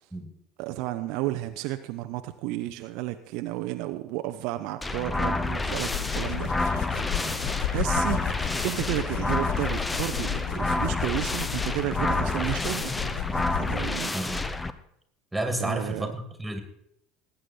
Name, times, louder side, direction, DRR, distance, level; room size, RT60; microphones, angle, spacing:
voice 1, 0.6-7.1 7.7-8.2 8.6-13.1 13.4-14.1 15.6-16.1, right 16 dB, 55° right, 8 dB, 0.6 m, -32 dB
Trumpet, 4.8-13.7, left 2 dB, 85° left, 1.6 m, -51 dB
sound 1, 4.8-14.7, left 2 dB, 15° left, 0.8 m, -29 dB
sound 2, 5.7-14.0, left 18 dB, 55° left, 0.4 m, -34 dB
voice 2, 14.1-14.5 15.3-16.6, right 1 dB, 5° right, 7 dB, 2.3 m, -31 dB
18.5 x 9.0 x 4.3 m, 0.74 s
figure-of-eight pair, 70°, 0 cm